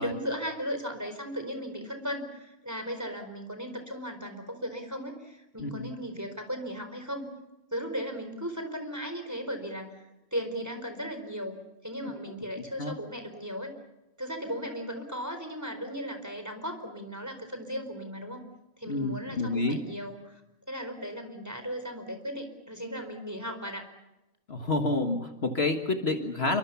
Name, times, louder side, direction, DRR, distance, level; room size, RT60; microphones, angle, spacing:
voice 1, 0.0-7.3 7.7-13.7 14.2-18.4 18.8-20.4 20.7-23.8, equal, 10° right, 6 dB, 4.5 m, -36 dB
voice 2, 18.9-19.8 24.5-26.6, left 2 dB, 50° left, 6 dB, 1.8 m, -29 dB
28.0 x 24.5 x 7.1 m, 0.96 s
omnidirectional pair, 1.4 m